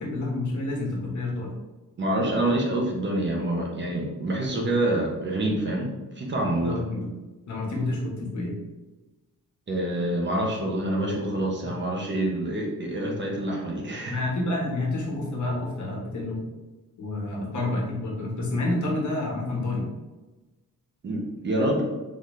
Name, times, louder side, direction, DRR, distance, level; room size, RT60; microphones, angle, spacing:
voice 1, 0.0-1.5 6.6-7.1 7.5-8.5 14.1-16.4 17.0-19.9, left 2 dB, 55° left, -2 dB, 1.3 m, -29 dB
voice 2, 2.0-6.8 9.7-14.2 21.0-21.8, right 1 dB, 35° right, -1 dB, 0.8 m, -27 dB
4.1 x 3.9 x 3.1 m, 1.1 s
wide cardioid pair, 175°, 34 cm